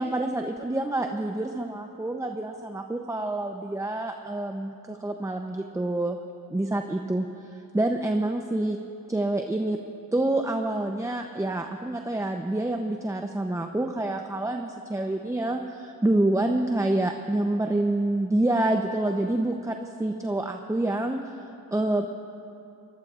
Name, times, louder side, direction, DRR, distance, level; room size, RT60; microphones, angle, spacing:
voice 1, 0.0-6.2 6.5-8.8 9.1-9.8 10.1-21.4 21.7-22.1, right 1 dB, 10° right, 4 dB, 0.7 m, -27 dB
24.0 x 20.0 x 2.5 m, 2.7 s
cardioid pair, 95°, 35 cm